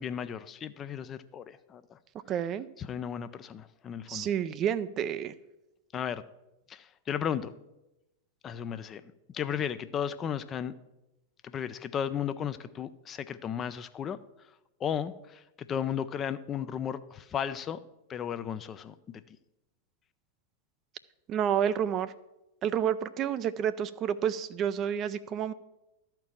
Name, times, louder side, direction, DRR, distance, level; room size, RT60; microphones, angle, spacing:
voice 1, 0.0-2.0 2.8-4.3 5.9-6.2 6.7-7.5 8.4-10.7 11.4-14.2 14.8-17.8 18.1-18.9, left 8 dB, 25° left, 12 dB, 0.4 m, -35 dB
voice 2, 2.3-2.7 4.1-5.3 21.3-22.1 22.6-25.5, right 9 dB, 30° right, 14 dB, 0.4 m, -29 dB
12.5 x 4.5 x 7.3 m, 0.96 s
figure-of-eight pair, 90°, 0 cm